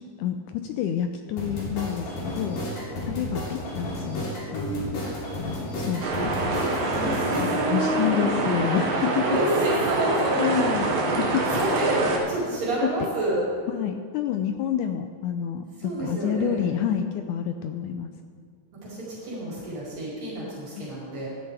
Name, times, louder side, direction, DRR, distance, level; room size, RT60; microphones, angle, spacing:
voice 1, 0.0-2.6 3.0-4.9 5.3-6.3 7.4-9.4 10.4-10.9 11.2-11.4 12.8-13.1 13.7-18.1 20.8-20.9, left 9 dB, 85° left, 7 dB, 1.8 m, -28 dB
sound 1, 1.4-7.4, left 1 dB, 55° left, 3.9 m, -32 dB
voice 2, 2.8-3.2 5.0-5.1 6.9-8.5 9.2-10.7 11.5-12.0 12.3-13.4 15.8-16.6 18.8-21.3, right 1 dB, 70° right, -9 dB, 5.8 m, -29 dB
sound 2, 6.0-12.2, right 3 dB, 85° right, 3.4 m, -26 dB
17.5 x 12.5 x 3.4 m, 2.1 s
omnidirectional pair, 4.0 m